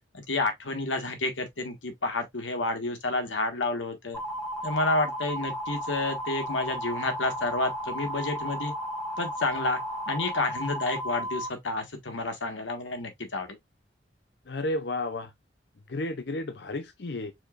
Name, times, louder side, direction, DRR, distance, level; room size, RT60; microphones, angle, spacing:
voice 1, 0.1-4.2 4.6-8.7 9.2-9.8 10.1-13.6, left 2 dB, 90° left, 1.5 m, -30 dB
sound 1, 4.1-11.5, equal, 5° left, 1.2 m, -34 dB
voice 2, 14.5-15.3 15.9-17.3, left 2 dB, 60° left, 0.6 m, -32 dB
4.9 x 4.3 x 2.4 m
head